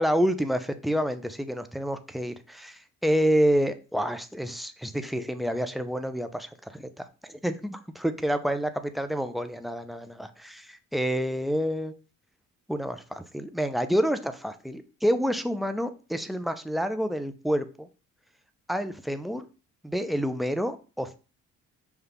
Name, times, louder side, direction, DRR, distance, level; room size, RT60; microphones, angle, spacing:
voice 1, 0.0-11.9 12.7-17.9 18.7-19.5 19.8-21.1, equal, ahead, 8 dB, 0.4 m, -28 dB
5.6 x 2.3 x 3.4 m, 0.34 s
cardioid pair, 90°, 30 cm